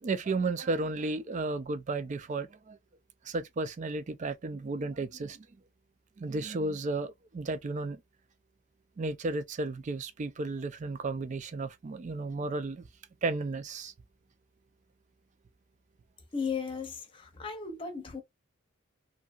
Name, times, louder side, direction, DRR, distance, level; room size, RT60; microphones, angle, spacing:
voice 1, 0.0-2.8 3.2-5.5 6.2-8.0 9.0-12.9 13.2-13.9, right 3 dB, 35° right, 0.3 m, -33 dB
voice 2, 16.3-18.2, left 5 dB, 25° left, 0.7 m, -35 dB
2.8 x 2.6 x 2.3 m
head